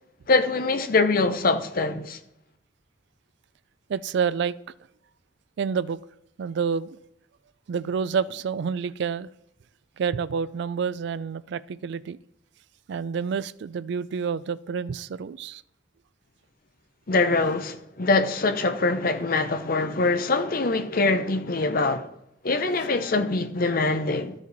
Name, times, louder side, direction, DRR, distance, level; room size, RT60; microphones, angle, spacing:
voice 1, 0.3-2.2 17.1-22.1 22.4-24.3, left 3 dB, 50° left, 0.7 m, -23 dB
voice 2, 3.9-4.5 5.6-6.0 6.4-7.0 7.7-9.3 10.0-12.2 12.9-15.6, right 6 dB, 60° right, 0.3 m, -28 dB
13.0 x 5.0 x 4.0 m
head